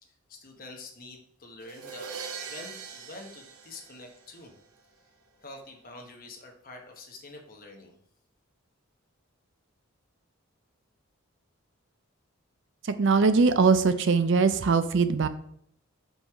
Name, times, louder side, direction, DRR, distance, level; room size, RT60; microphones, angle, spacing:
voice 1, 0.0-2.1 2.5-4.5 5.4-7.9, left 2 dB, 40° left, 2 dB, 1.1 m, -46 dB
sound 1, 1.6-4.6, right 6 dB, 85° right, 0.9 m, -41 dB
voice 2, 12.8-15.3, right 4 dB, 55° right, 11 dB, 0.4 m, -21 dB
5.3 x 4.6 x 4.8 m, 0.66 s
head